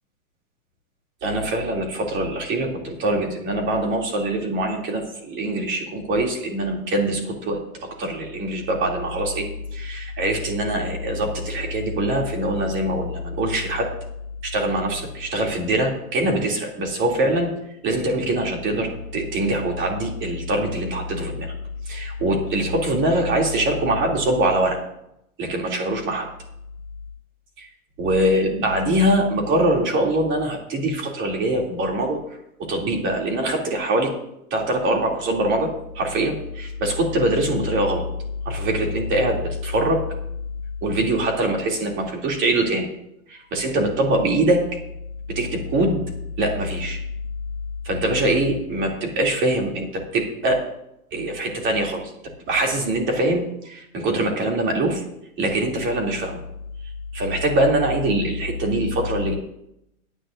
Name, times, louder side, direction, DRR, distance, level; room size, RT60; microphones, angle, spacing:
voice 1, 1.2-13.9 14.4-17.5 17.8-21.5 21.8-24.8 25.4-26.3 27.6-27.7 28.0-32.2 32.6-34.1 34.5-38.0 38.4-40.0 40.8-42.9 43.3-44.6 45.3-46.0 46.4-47.0 47.8-50.6 51.1-52.1 52.5-55.0 55.4-56.4 57.1-59.3, right 1 dB, 25° right, 0 dB, 2.8 m, -23 dB
18.0 x 9.9 x 2.6 m, 0.79 s
hypercardioid pair, 135°, 43 cm